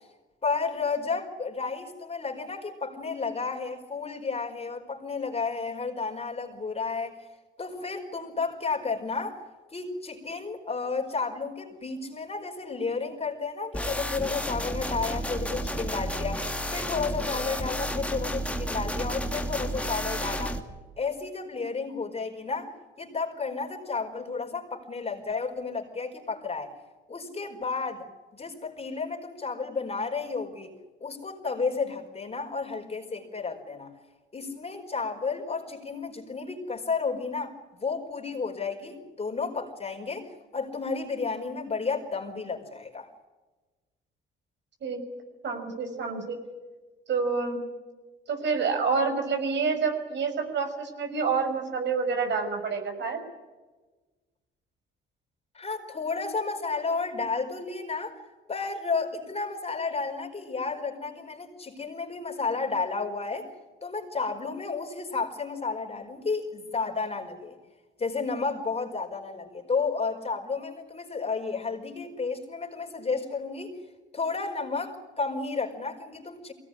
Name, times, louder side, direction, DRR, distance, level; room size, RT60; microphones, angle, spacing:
voice 1, 0.4-7.1 7.6-9.4 9.7-20.6 21.0-22.7 23.0-26.7 27.1-28.1 28.3-30.7 31.0-33.9 34.3-43.1 55.5-58.2 58.5-63.5 63.8-67.6 68.0-73.7 74.1-76.5, left 4 dB, 30° left, 1 dB, 4.9 m, -32 dB
sound 1, 13.7-20.6, equal, 5° left, 2.7 m, -31 dB
voice 2, 45.4-46.4 47.1-47.6 48.3-53.2, right 5 dB, 65° right, 5 dB, 6.1 m, -28 dB
23.0 x 18.0 x 9.9 m, 1.2 s
cardioid pair, 90°, 20 cm